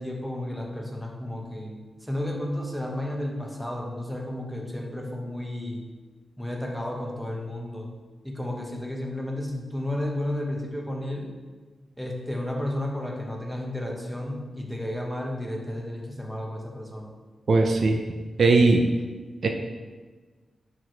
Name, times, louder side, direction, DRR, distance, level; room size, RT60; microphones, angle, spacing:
voice 1, 0.0-5.8 6.4-7.9 8.2-11.3 12.0-17.1, left 1 dB, ahead, 0 dB, 1.1 m, -32 dB
voice 2, 17.5-18.0 18.4-18.8 19.4-19.5, right 3 dB, 55° right, 3 dB, 0.6 m, -18 dB
10.0 x 4.7 x 3.3 m, 1.4 s
wide cardioid pair, 115°, 0 cm